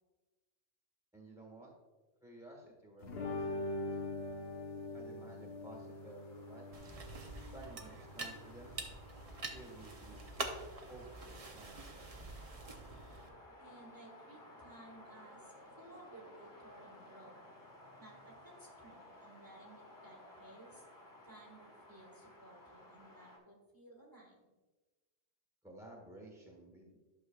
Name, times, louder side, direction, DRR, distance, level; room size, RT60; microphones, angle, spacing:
voice 1, 1.1-1.7 2.2-4.1 4.9-6.8 7.5-8.8 9.5-10.5 10.9-12.1 25.6-27.0, right 2 dB, 5° right, -1 dB, 1.5 m, -54 dB
sound 1, 3.0-10.7, left 2 dB, 65° left, 1.2 m, -44 dB
sound 2, 5.5-23.4, left 1 dB, 15° left, 1.6 m, -58 dB
sound 3, 6.7-13.3, right 2 dB, 35° right, 0.8 m, -46 dB
voice 2, 13.6-17.4 18.0-20.8 21.2-24.4, right 2 dB, 20° right, -2 dB, 1.4 m, -57 dB
12.0 x 6.3 x 2.3 m, 1.2 s
omnidirectional pair, 1.1 m